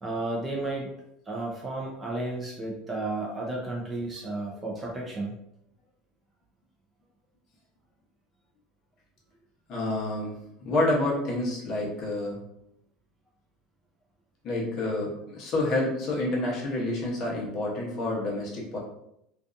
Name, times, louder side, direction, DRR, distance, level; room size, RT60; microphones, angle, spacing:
voice 1, 0.0-0.9 1.3-5.3, right 2 dB, 15° right, -2 dB, 0.4 m, -33 dB
voice 2, 9.7-10.3 10.6-12.4 14.4-18.8, left 2 dB, 35° left, -3 dB, 0.8 m, -28 dB
2.5 x 2.3 x 2.4 m, 0.78 s
cardioid pair, 170°, 0 cm